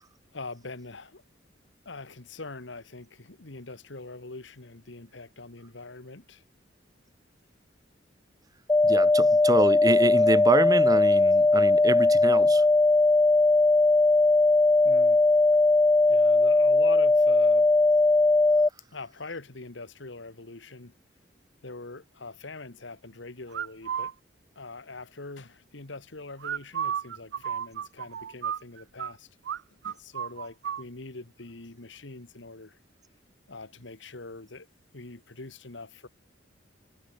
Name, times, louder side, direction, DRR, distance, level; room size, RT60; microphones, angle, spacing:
voice 1, 0.3-1.2 1.9-6.4 14.8-15.2 16.1-17.7 18.9-20.9 21.6-24.1 24.6-29.3 29.7-32.8 33.5-34.7 34.9-36.1, left 3 dB, 70° left, 1.7 m, -43 dB
sound 1, 8.7-18.7, left 2 dB, 15° left, 0.3 m, -20 dB
voice 2, 8.8-12.6, right 2 dB, 20° right, 0.7 m, -26 dB
sound 2, 23.5-24.1 26.4-29.1 29.4-29.6 29.8-30.8, right 8 dB, 65° right, 0.3 m, -32 dB
head